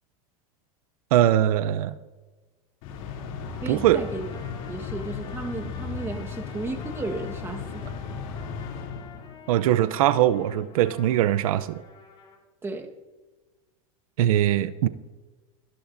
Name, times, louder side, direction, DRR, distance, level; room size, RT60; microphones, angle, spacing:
voice 1, 1.1-2.0 3.7-4.0 9.5-11.8 14.2-14.9, right 12 dB, 80° right, 14 dB, 0.6 m, -21 dB
sound 1, 2.8-9.6, left 6 dB, 70° left, 3.0 m, -36 dB
Trumpet, 3.4-12.4, left 6 dB, 30° left, 3.3 m, -49 dB
voice 2, 3.6-4.3 4.7-7.9 12.6-12.9, right 3 dB, 15° right, 3 dB, 1.4 m, -34 dB
24.0 x 11.5 x 2.7 m, 1.3 s
supercardioid pair, 135°, 18 cm